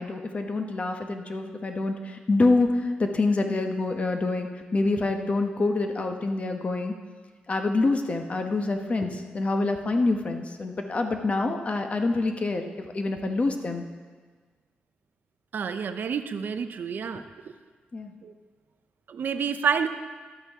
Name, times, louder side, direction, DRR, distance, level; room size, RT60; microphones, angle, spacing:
voice 1, 0.0-6.9 7.5-13.8 17.1-17.2 17.9-18.1, left 3 dB, 40° left, 5 dB, 1.0 m, -26 dB
voice 2, 15.5-17.2 18.2-18.3 19.1-19.9, right 6 dB, 65° right, 10 dB, 0.5 m, -28 dB
12.0 x 8.3 x 3.6 m, 1.5 s
cardioid pair, 80°, 4 cm